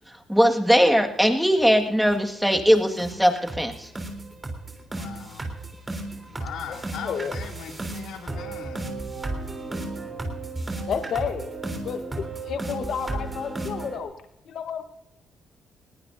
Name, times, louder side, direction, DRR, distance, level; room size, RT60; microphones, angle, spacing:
voice 1, 0.3-3.9, equal, ahead, 4 dB, 1.8 m, -20 dB
sound 1, 1.6-1.7 2.0-2.2 2.5-2.7 3.0-14.0, right 2 dB, 25° right, 3.5 m, -34 dB
voice 2, 5.0-5.5 6.3-8.9, left 7 dB, 85° left, 2 dB, 2.7 m, -39 dB
voice 3, 7.0-7.4 10.9-11.6 11.8-14.1 14.5-14.8, left 7 dB, 65° left, 8 dB, 1.1 m, -31 dB
20.5 x 18.0 x 2.7 m, 0.85 s
cardioid pair, 90°, 0 cm